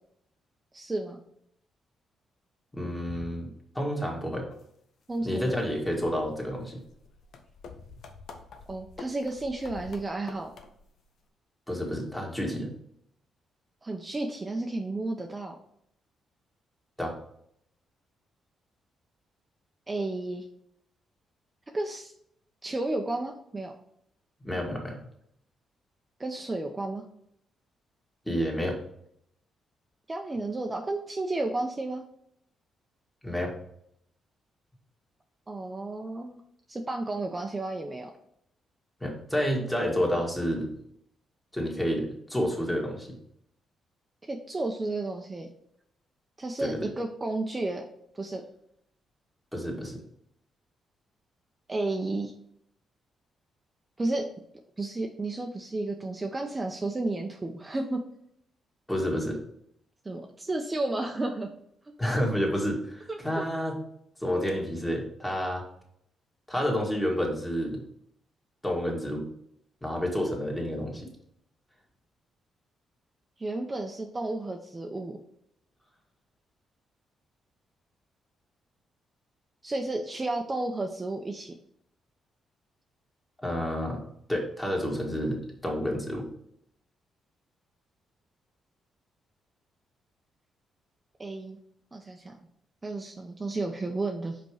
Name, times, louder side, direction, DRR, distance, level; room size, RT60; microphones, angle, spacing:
voice 1, 0.7-1.2 5.1-5.5 8.7-10.5 13.8-15.6 19.9-20.4 21.7-22.1 22.6-23.7 26.2-27.0 30.1-32.0 35.5-36.4 36.7-38.1 44.3-45.5 46.4-47.8 48.1-48.4 51.7-52.3 54.0-54.3 54.8-58.0 60.0-61.5 63.1-63.4 73.4-75.2 79.6-81.5 91.2-91.6 91.9-92.3 92.8-94.4, right 2 dB, 25° right, 2 dB, 0.8 m, -32 dB
voice 2, 2.7-3.5 3.7-4.5 5.2-6.8 11.7-12.7 17.0-17.1 24.4-25.0 28.3-28.8 33.2-33.5 39.0-40.7 41.5-43.2 46.6-46.8 49.5-50.0 58.9-59.4 62.0-63.8 64.2-65.6 66.5-67.8 68.6-69.3 69.8-71.1 83.4-86.3, equal, 10° left, -1 dB, 2.0 m, -29 dB
sound 1, 4.5-4.6 5.1-11.0, left 4 dB, 70° left, 0.8 m, -48 dB
5.2 x 4.4 x 4.9 m, 0.72 s
cardioid pair, 75°, 0 cm